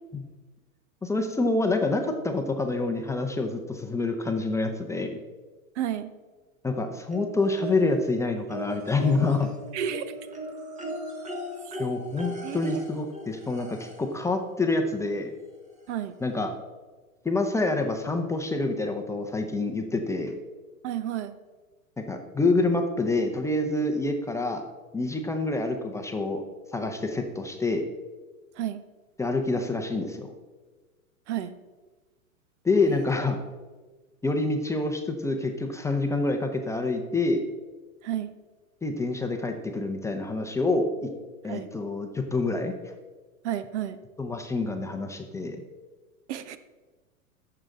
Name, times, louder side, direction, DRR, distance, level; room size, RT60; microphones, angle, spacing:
voice 1, 1.0-5.2 6.6-9.5 11.8-15.3 16.2-16.5 17.2-20.4 22.0-24.6 24.9-26.4 26.7-27.9 29.2-30.3 32.6-33.4 34.2-37.4 38.8-41.1 41.4-42.9 44.2-45.6, left 3 dB, 5° left, 4 dB, 0.7 m, -27 dB
voice 2, 5.7-6.1 9.7-10.1 11.6-11.7 12.4-12.8 15.9-16.1 20.8-21.4 28.5-28.8 31.3-31.6 32.9-33.0 38.0-38.3 41.5-41.7 43.4-44.0 46.3-46.6, right 10 dB, 55° right, 13 dB, 0.8 m, -31 dB
sound 1, 7.1-8.1 8.5-14.2 15.4-15.5 15.9-16.0, equal, 15° right, 1.5 m, -38 dB
14.0 x 6.8 x 3.8 m, 1.3 s
hypercardioid pair, 115°, 42 cm